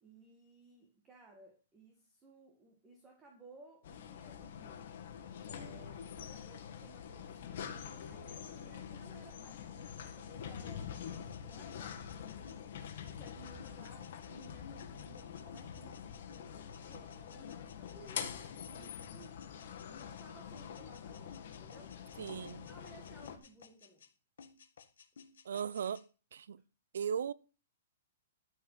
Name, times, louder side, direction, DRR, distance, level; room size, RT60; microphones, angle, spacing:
voice 1, 0.0-4.9 5.5-19.4 19.9-21.9 22.7-24.1, right 3 dB, 10° right, 1.8 m, -59 dB
sound 1, 3.8-23.4, left 8 dB, 50° left, 2.1 m, -46 dB
sound 2, 10.9-20.3 20.5-22.2 22.4-24.1 24.4-26.0, left 6 dB, 85° left, 1.7 m, -57 dB
voice 2, 22.2-22.7 25.4-26.0 26.3-26.6 26.9-27.3, right 7 dB, 80° right, 0.7 m, -37 dB
13.5 x 5.4 x 7.3 m
hypercardioid pair, 175°, 0 cm